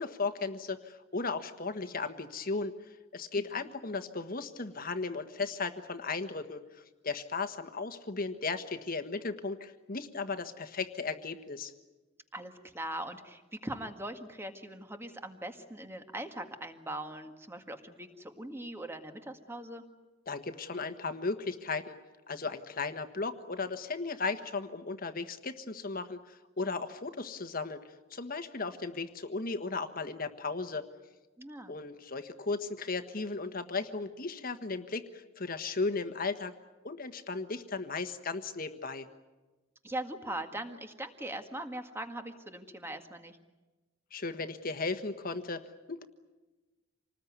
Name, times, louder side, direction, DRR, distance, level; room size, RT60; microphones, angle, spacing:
voice 1, 0.0-11.7 20.3-22.0 22.3-30.8 31.7-36.5 36.8-39.1 44.1-45.6 45.9-46.0, left 4 dB, 45° left, 8 dB, 1.4 m, -36 dB
voice 2, 12.3-19.8 31.4-31.8 39.8-43.4, right 1 dB, 10° right, 6 dB, 1.8 m, -41 dB
27.0 x 20.0 x 9.6 m, 1.2 s
head